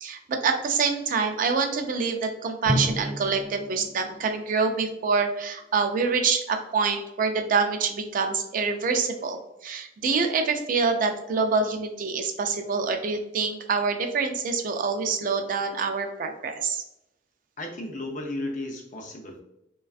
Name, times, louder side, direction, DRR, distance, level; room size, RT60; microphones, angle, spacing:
voice 1, 0.0-16.8, right 5 dB, 45° right, 5 dB, 0.3 m, -26 dB
Drum, 2.7-5.3, equal, 25° right, 1.2 m, -32 dB
voice 2, 17.6-19.4, left 1 dB, 45° left, 2 dB, 0.5 m, -34 dB
2.4 x 2.2 x 2.3 m, 0.83 s
head